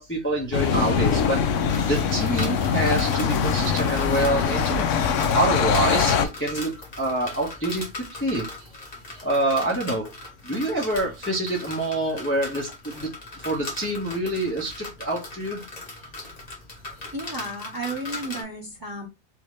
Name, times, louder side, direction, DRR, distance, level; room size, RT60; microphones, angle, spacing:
voice 1, 0.0-1.4 1.8-4.8 5.3-6.7 7.0-7.8 8.2-8.4 9.2-10.0 10.4-12.7 13.0-13.1 13.4-15.6, right 1 dB, 10° left, -2 dB, 0.8 m, -26 dB
sound 1, 0.5-6.3, left 7 dB, 75° left, 0.9 m, -23 dB
sound 2, 1.7-18.4, left 2 dB, 35° left, 1.1 m, -39 dB
voice 2, 17.1-19.1, right 2 dB, 20° right, -2 dB, 0.9 m, -33 dB
3.5 x 2.7 x 3.0 m, 0.23 s
omnidirectional pair, 1.4 m